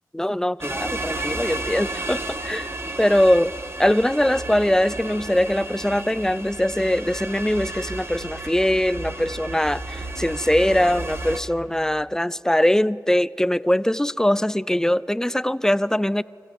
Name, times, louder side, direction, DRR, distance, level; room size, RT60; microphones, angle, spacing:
voice 1, 0.1-2.7 3.0-16.2, left 1 dB, 5° left, 0.4 m, -22 dB
sound 1, 0.6-11.4, right 2 dB, 35° right, 1.3 m, -32 dB
24.5 x 15.0 x 8.3 m
cardioid pair, 50°, 7 cm